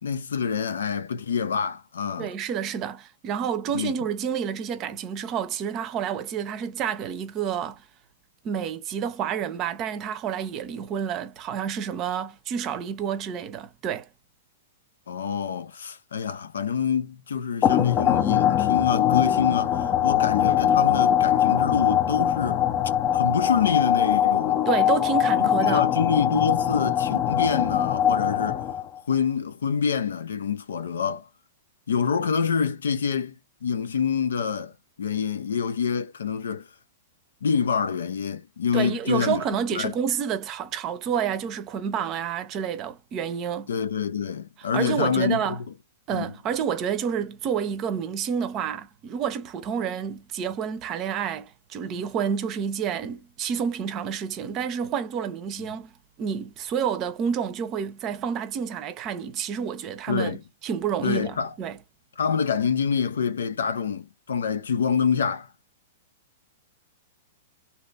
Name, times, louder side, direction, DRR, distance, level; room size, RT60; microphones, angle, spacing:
voice 1, 0.0-2.3 3.7-3.9 15.1-22.6 23.1-24.6 25.6-28.6 29.1-31.3 31.9-33.4 33.6-34.7 35.0-36.7 37.4-39.4 39.7-39.9 43.7-45.6 46.1-46.3 60.1-60.4 61.0-61.5 62.2-65.5, left 6 dB, 90° left, 0.5 m, -26 dB
voice 2, 2.2-7.8 8.4-14.1 24.7-25.8 38.7-43.7 44.7-45.6 46.1-55.9 56.2-61.8, right 8 dB, 35° right, 0.6 m, -29 dB
sound 1, 17.6-29.0, left 10 dB, 35° left, 0.6 m, -22 dB
2.8 x 2.4 x 3.2 m
hypercardioid pair, 130°, 0 cm